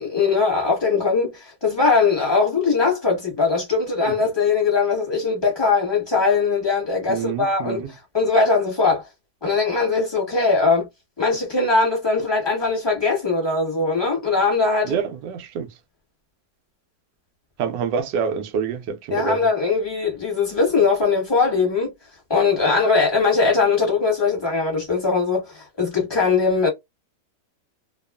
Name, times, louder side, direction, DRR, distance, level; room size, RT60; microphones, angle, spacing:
voice 1, 0.0-7.8 8.1-9.1 9.4-10.9 11.2-15.0 19.1-21.9 22.3-26.7, left 4 dB, 15° left, 1.1 m, -20 dB
voice 2, 7.1-7.9 14.8-15.7 17.6-19.4, right 7 dB, 85° right, 1.3 m, -26 dB
2.9 x 2.3 x 2.2 m
omnidirectional pair, 1.8 m